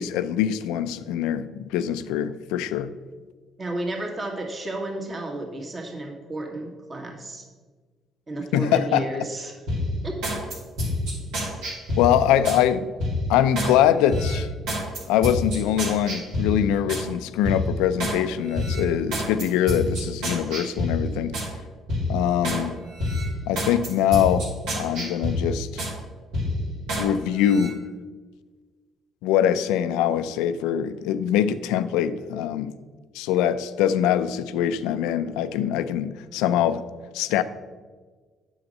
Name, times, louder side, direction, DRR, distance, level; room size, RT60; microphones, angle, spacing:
voice 1, 0.0-2.9 8.5-9.1 12.0-12.9 13.3-14.5 15.1-21.4 22.1-22.8 23.5-25.9 27.0-27.8 29.2-32.7 33.1-36.8 37.1-37.4, left 10 dB, 90° left, 0.4 m, -23 dB
voice 2, 3.6-7.5 8.3-9.5 10.0-10.4, right 1 dB, 35° right, 2.0 m, -32 dB
Hip Hop Slice Beat, 9.7-12.6 13.0-13.7 14.1-17.1 17.4-18.2 18.5-21.5 21.9-22.6 23.0-26.0 26.3-27.1 27.4-27.7, left 1 dB, 80° right, 2.6 m, -28 dB
7.9 x 6.5 x 5.3 m
supercardioid pair, 70°, 0 cm